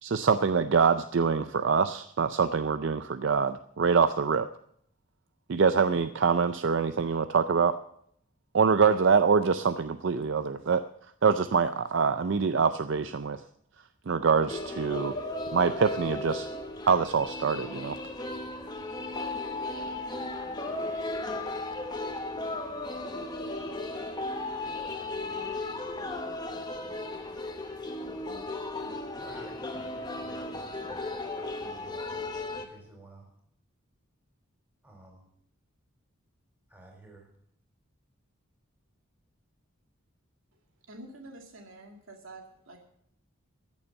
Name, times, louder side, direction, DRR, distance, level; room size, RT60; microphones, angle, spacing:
voice 1, 0.0-4.5 5.5-7.8 8.5-10.8 11.2-13.4 14.1-15.2 15.5-16.5 16.9-18.0, right 5 dB, 60° right, 11 dB, 0.4 m, -25 dB
sound 1, 14.5-32.6, left 2 dB, 20° left, 1.1 m, -35 dB
voice 2, 29.2-31.2 31.5-33.3 34.8-35.3 36.7-37.3, right 1 dB, 10° right, 0 dB, 3.7 m, -52 dB
voice 3, 40.9-42.8, right 2 dB, 75° right, 3 dB, 2.4 m, -47 dB
14.0 x 7.1 x 7.7 m, 0.69 s
head